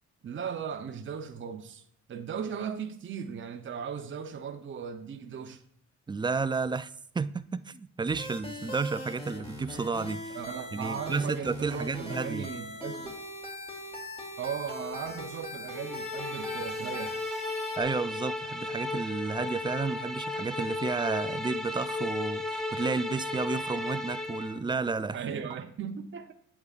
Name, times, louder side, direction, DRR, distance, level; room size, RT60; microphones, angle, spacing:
voice 1, 0.2-1.8 2.1-5.6 10.3-13.2 14.4-17.2 25.1-26.3, right 7 dB, 40° right, 0.8 m, -37 dB
voice 2, 6.1-10.4 10.7-12.5 17.8-25.2, right 4 dB, 15° right, 0.4 m, -32 dB
sound 1, 8.1-17.8, left 1 dB, 20° left, 2.7 m, -41 dB
sound 2, 15.7-24.6, left 2 dB, ahead, 0.9 m, -34 dB
8.6 x 8.3 x 2.5 m
cardioid pair, 90°, 30 cm